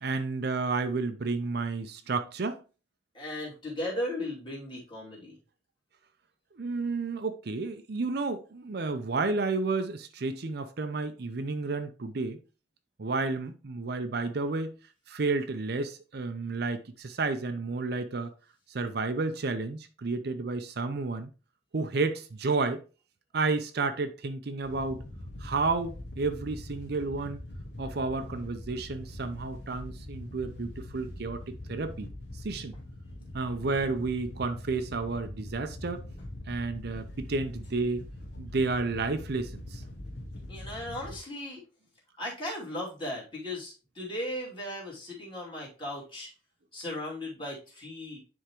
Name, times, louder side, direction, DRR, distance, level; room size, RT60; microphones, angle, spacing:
voice 1, 0.0-2.6 6.5-12.4 13.0-14.8 15.1-18.3 18.7-21.3 21.7-22.8 23.3-25.0 25.4-27.4 27.8-32.1 32.4-32.7 33.3-36.0 36.5-38.1 38.4-39.8, right 3 dB, 55° right, 0.5 m, -31 dB
voice 2, 3.1-5.4 39.9-40.0 40.5-41.6 42.2-46.3 46.7-48.2, left 1 dB, 25° left, 2.7 m, -37 dB
Wind / Boat Water vehicle, 24.6-41.1, left 1 dB, 60° left, 1.3 m, -43 dB
10.0 x 3.5 x 3.0 m
head